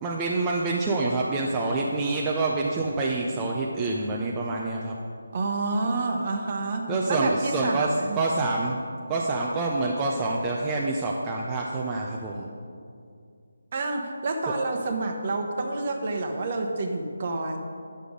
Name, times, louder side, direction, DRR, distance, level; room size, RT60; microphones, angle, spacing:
voice 1, 0.0-4.9 6.9-8.8 9.1-12.5, right 3 dB, 15° right, -3 dB, 0.6 m, -27 dB
voice 2, 5.3-8.2 13.7-17.6, right 2 dB, 40° right, 3 dB, 1.0 m, -28 dB
9.6 x 6.6 x 5.1 m, 2.3 s
figure-of-eight pair, 160°, 0 cm